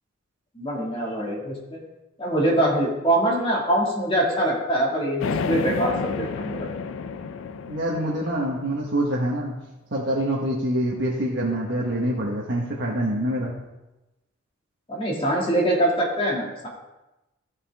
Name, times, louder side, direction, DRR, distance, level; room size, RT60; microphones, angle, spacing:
voice 1, 0.5-1.8 2.2-6.6 14.9-16.7, right 1 dB, 25° left, -2 dB, 2.1 m, -23 dB
sound 1, 5.2-9.1, left 5 dB, 80° left, 0.4 m, -31 dB
voice 2, 7.7-9.5 9.9-13.5, right 1 dB, 60° right, -4 dB, 1.3 m, -25 dB
14.5 x 5.4 x 3.5 m, 1.0 s
head